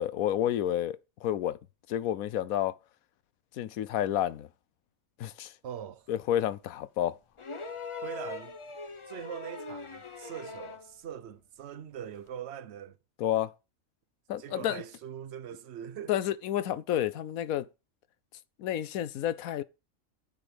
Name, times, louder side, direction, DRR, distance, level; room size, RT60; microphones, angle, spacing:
voice 1, 0.0-1.6 1.9-2.7 3.6-4.5 5.2-5.5 6.1-7.2 13.2-13.5 14.3-14.8 16.1-17.7 18.6-19.6, left 11 dB, 80° left, 1.1 m, -30 dB
voice 2, 5.6-6.1 8.0-8.6 9.1-13.0 14.4-16.1, right 9 dB, 55° right, 0.9 m, -42 dB
sound 1, 7.4-10.9 12.3-12.4, left 4 dB, 35° left, 0.5 m, -41 dB
9.4 x 6.3 x 5.0 m
omnidirectional pair, 1.5 m